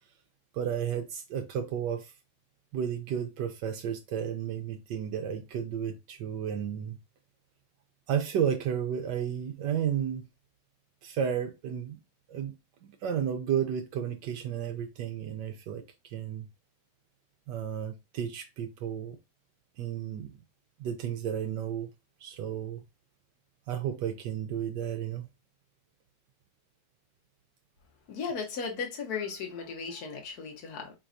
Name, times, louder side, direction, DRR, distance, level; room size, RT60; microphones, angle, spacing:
voice 1, 0.5-2.1 2.7-7.0 8.1-10.3 11.0-12.0 12.3-12.5 12.8-16.5 17.5-19.2 19.8-20.3 20.8-21.9 22.2-22.8 23.7-25.3, right 8 dB, 80° right, 1.3 m, -32 dB
voice 2, 28.1-30.9, left 5 dB, 60° left, 1.5 m, -36 dB
4.6 x 3.9 x 2.6 m
omnidirectional pair, 1.9 m